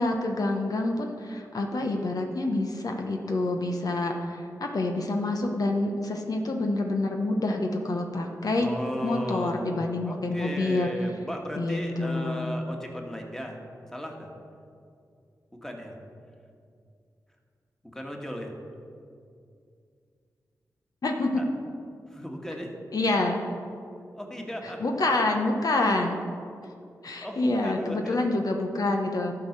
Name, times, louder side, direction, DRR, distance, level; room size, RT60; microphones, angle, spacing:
voice 1, 0.0-8.7 9.0-10.9 11.6-12.5 21.0-21.4 22.9-23.4 24.6-26.2 27.0-29.3, left 2 dB, 65° left, 2 dB, 0.9 m, -27 dB
voice 2, 8.6-9.8 10.0-13.6 13.9-14.3 15.6-16.0 17.9-18.5 21.3-21.4 22.1-22.7 24.1-24.8 27.2-28.2, equal, 5° left, 1 dB, 1.7 m, -35 dB
11.5 x 4.8 x 6.6 m, 2.4 s
cardioid pair, 50°, 7 cm